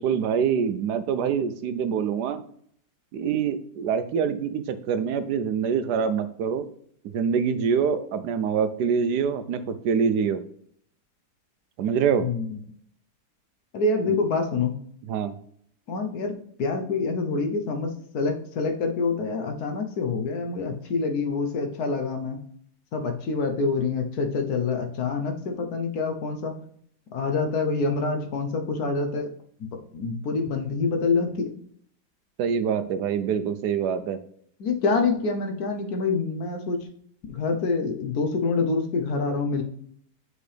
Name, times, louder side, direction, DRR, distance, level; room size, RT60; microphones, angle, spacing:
voice 1, 0.0-2.4 3.1-6.7 7.0-10.4 11.8-12.3 14.1-14.2 15.1-15.4 32.4-34.2, right 7 dB, 75° right, 11 dB, 1.1 m, -25 dB
voice 2, 12.2-12.6 13.7-14.7 15.9-22.4 22.9-26.6 27.1-29.3 29.9-31.5 34.6-36.9 37.3-39.6, left 4 dB, 65° left, 4 dB, 1.4 m, -26 dB
8.2 x 4.8 x 3.3 m, 0.63 s
omnidirectional pair, 1.8 m